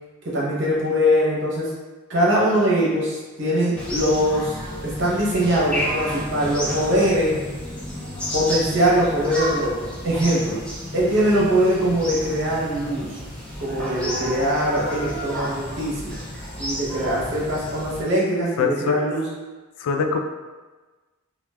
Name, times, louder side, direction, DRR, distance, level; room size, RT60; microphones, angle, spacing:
voice 1, 0.2-1.7 2.1-4.5 4.8-7.3 8.3-10.6 10.9-13.2 13.6-16.2 16.6-19.3, equal, 55° right, -5 dB, 0.8 m, -22 dB
sound 1, 3.8-18.0, equal, 5° left, 0.3 m, -31 dB
voice 2, 18.6-19.0 19.8-20.2, left 6 dB, 90° left, 7 dB, 0.3 m, -22 dB
3.2 x 2.3 x 2.2 m, 1.3 s
head